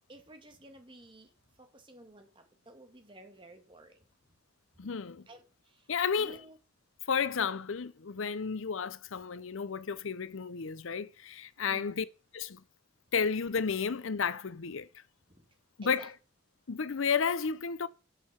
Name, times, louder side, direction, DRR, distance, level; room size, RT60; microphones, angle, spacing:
voice 1, 0.1-1.3 1.6-4.0 4.8-4.9 5.3-5.9 6.2-6.6 11.6-12.0 15.3-15.5 15.8-16.1, right 1 dB, 25° right, 1.8 m, -53 dB
voice 2, 4.8-5.2 5.9-6.5 7.1-12.1 12.3-12.6 13.1-14.9 15.8-16.2 16.7-17.9, left 6 dB, 75° left, 0.6 m, -32 dB
9.2 x 5.8 x 8.0 m
head